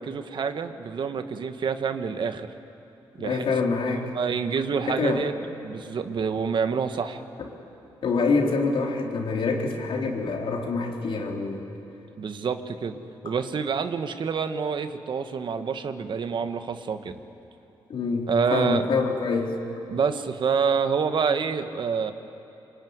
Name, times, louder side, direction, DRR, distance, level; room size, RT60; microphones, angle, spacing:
voice 1, 0.0-2.5 3.2-3.4 3.9-5.3 5.6-7.2 12.2-12.9 13.2-17.1 18.3-18.9 19.9-22.1, right 6 dB, 60° right, 8 dB, 1.5 m, -27 dB
voice 2, 3.2-4.1 5.0-5.3 7.4-7.5 8.0-11.6 17.9-19.6, left 4 dB, 70° left, 1 dB, 3.8 m, -26 dB
25.5 x 23.5 x 9.7 m, 3.0 s
cardioid pair, 80°, 9 cm